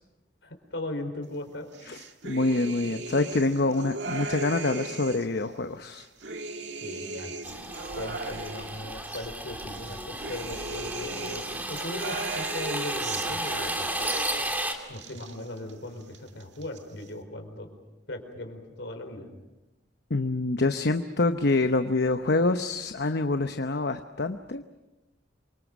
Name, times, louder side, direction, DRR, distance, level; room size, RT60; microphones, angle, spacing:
voice 1, 0.4-1.7 6.8-7.4 7.9-14.0 14.9-17.7 18.1-19.3, left 1 dB, 90° left, 6 dB, 4.5 m, -38 dB
sound 1, 1.7-5.4 5.8-9.3 9.7-14.6 14.8-15.7 16.0-16.8, right 3 dB, 70° right, 2.0 m, -38 dB
voice 2, 1.9-6.1 14.5-14.6 20.1-24.6, left 2 dB, 65° left, 8 dB, 0.9 m, -26 dB
sound 2, 7.4-14.7, right 1 dB, 10° right, 2.8 m, -33 dB
28.0 x 24.5 x 6.2 m, 1.0 s
head